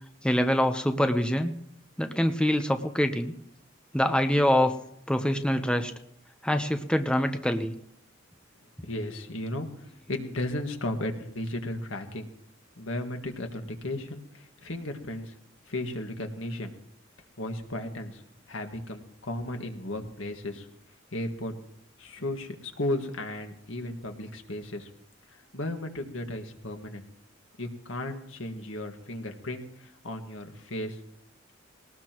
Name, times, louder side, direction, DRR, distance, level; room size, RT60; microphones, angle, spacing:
voice 1, 0.2-1.5 2.0-3.3 3.9-4.7 5.1-5.9 6.4-7.7, left 1 dB, 5° left, 7 dB, 0.8 m, -25 dB
voice 2, 8.8-12.3 12.8-15.3 15.7-16.7 17.4-18.2 18.5-20.7 21.1-21.5 22.0-24.9 25.3-27.0 27.6-31.0, left 1 dB, 80° left, 4 dB, 1.8 m, -35 dB
20.5 x 19.0 x 3.0 m, 0.69 s
head